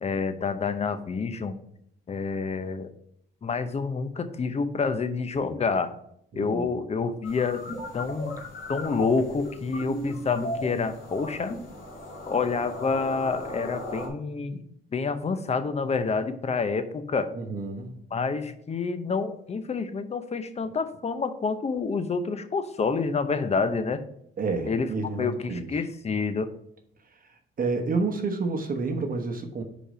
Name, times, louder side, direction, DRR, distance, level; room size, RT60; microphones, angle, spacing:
voice 1, 0.0-1.5 2.1-2.9 3.4-5.9 6.3-7.6 7.9-8.4 8.7-11.5 12.2-14.6 14.9-17.3 18.1-24.0 24.6-24.9 25.2-26.5, left 4 dB, 35° left, 11 dB, 0.7 m, -28 dB
voice 2, 6.3-6.7 17.3-17.9 24.4-25.6 27.6-29.6, right 3 dB, 45° right, 5 dB, 1.0 m, -29 dB
sound 1, 7.2-14.1, equal, 70° left, 2.1 m, -36 dB
5.1 x 5.0 x 5.0 m, 0.72 s
cardioid pair, 90°, 20 cm